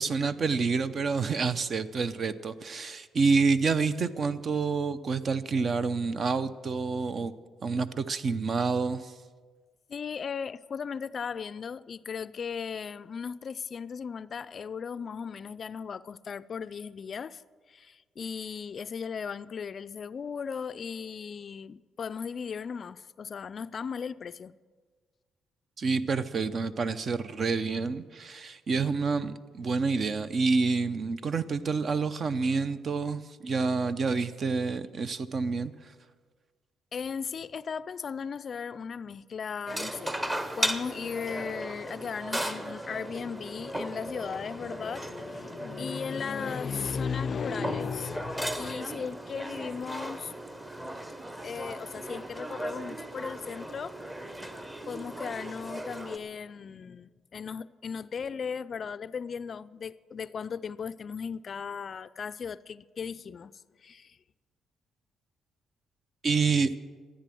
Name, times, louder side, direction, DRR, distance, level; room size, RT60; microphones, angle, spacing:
voice 1, 0.0-7.3 7.6-9.1 25.8-35.7 66.2-66.8, right 4 dB, 50° right, 0.6 m, -28 dB
voice 2, 9.9-17.4 17.7-24.5 36.9-40.2 40.6-50.3 51.4-54.0 54.9-63.5 63.8-64.2, left 6 dB, 50° left, 0.3 m, -36 dB
sound 1, 39.7-56.2, right 1 dB, 15° right, 0.9 m, -37 dB
14.0 x 9.8 x 7.7 m
cardioid pair, 90°, 0 cm